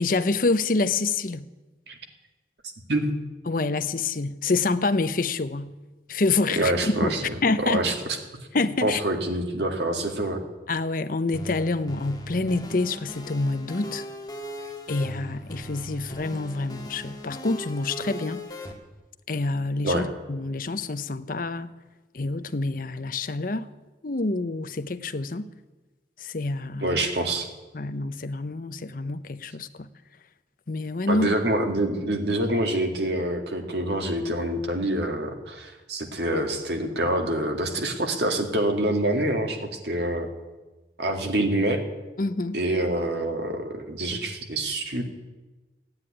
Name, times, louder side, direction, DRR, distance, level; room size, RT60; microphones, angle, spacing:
voice 1, 0.0-1.5 3.5-5.7 6.1-6.7 7.0-7.2 7.4-7.8 8.5-9.0 10.7-14.0 14.9-18.5 19.3-21.7 22.1-23.7 24.0-25.5 26.2-27.0 27.7-29.9 30.7-31.3 42.2-42.6, left 3 dB, 50° left, 0.7 m, -27 dB
voice 2, 6.6-7.9 8.8-10.4 19.8-20.1 26.8-27.5 31.1-40.3 41.0-41.8 42.5-45.0, right 1 dB, 70° right, 2.1 m, -26 dB
sound 1, 11.3-18.7, equal, 20° left, 1.7 m, -39 dB
15.0 x 9.7 x 9.8 m
head